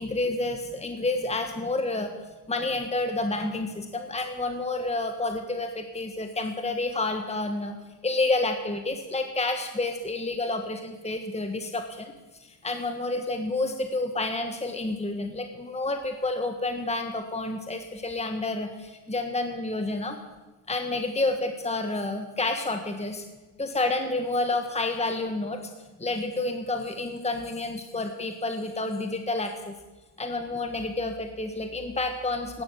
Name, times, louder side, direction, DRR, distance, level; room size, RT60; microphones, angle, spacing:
voice 1, 0.0-2.1 2.5-7.8 8.0-12.1 12.5-20.2 20.7-23.2 23.6-25.6 26.0-29.7 30.2-32.6, left 2 dB, 15° left, 5 dB, 1.5 m, -29 dB
16.0 x 11.5 x 7.5 m, 1.1 s
cardioid pair, 95°, 39 cm